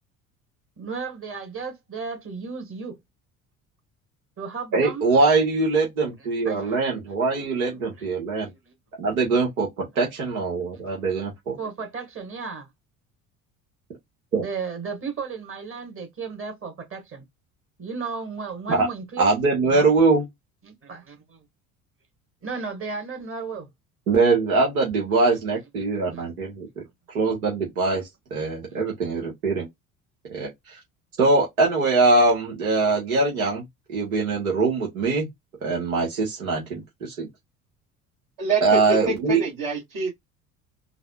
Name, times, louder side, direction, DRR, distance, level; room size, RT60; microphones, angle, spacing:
voice 1, 0.8-2.9 4.4-5.0 6.2-6.8 8.0-8.1 8.3-8.7 10.2-10.3 10.7-10.8 11.6-12.7 14.4-17.2 17.8-19.3 19.6-19.9 20.6-21.4 22.4-23.7 25.3-25.4 26.1-26.3 28.7-28.8, right 5 dB, 30° right, 1.7 m, -34 dB
voice 2, 4.7-8.5 9.0-11.6 14.3-14.4 18.7-18.9 19.2-20.3 24.1-29.7 30.3-30.8 31.2-33.6 33.9-35.3 35.6-37.3 38.6-39.4, right 3 dB, 75° right, 1.4 m, -22 dB
voice 3, 38.4-40.1, right 4 dB, 50° right, 1.7 m, -26 dB
4.0 x 2.2 x 2.3 m
figure-of-eight pair, 60°, 43 cm